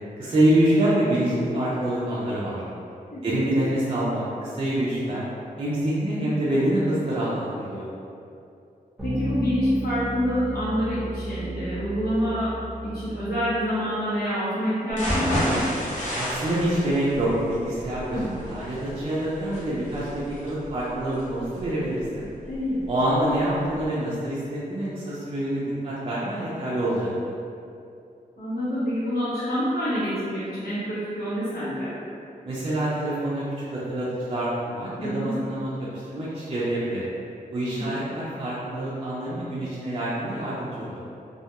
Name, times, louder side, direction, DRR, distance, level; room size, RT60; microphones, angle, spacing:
voice 1, 0.2-2.6 3.2-5.2 5.6-7.9 16.2-22.3 22.9-27.1 32.4-33.4 33.7-37.0 37.5-41.0, right 1 dB, 35° right, -9 dB, 0.4 m, -26 dB
voice 2, 9.0-12.5 12.8-15.6 18.1-18.3 22.5-22.8 28.4-31.9 35.0-35.4 37.6-37.8, equal, 90° left, -12 dB, 0.9 m, -27 dB
sound 1, 9.0-13.8, right 2 dB, 10° right, 0.8 m, -33 dB
sound 2, 14.9-22.9 23.3-23.4 23.8-23.9, equal, 50° left, 0.8 m, -31 dB
2.3 x 2.2 x 2.8 m, 2.6 s
wide cardioid pair, 120°, 15 cm